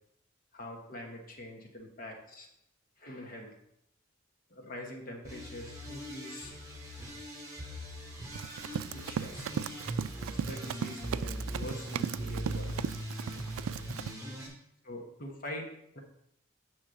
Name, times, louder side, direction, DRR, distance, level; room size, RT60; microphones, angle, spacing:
voice 1, 0.5-2.5 3.0-3.5 4.5-6.5 8.9-9.4 10.5-12.9 14.8-15.6 15.9-16.0, left 1 dB, 45° left, 1 dB, 1.2 m, -44 dB
sound 1, 5.2-14.5, right 1 dB, 15° right, 2.2 m, -40 dB
Run, 8.3-14.1, right 8 dB, 85° right, 0.3 m, -37 dB
8.0 x 6.2 x 3.8 m, 0.75 s
head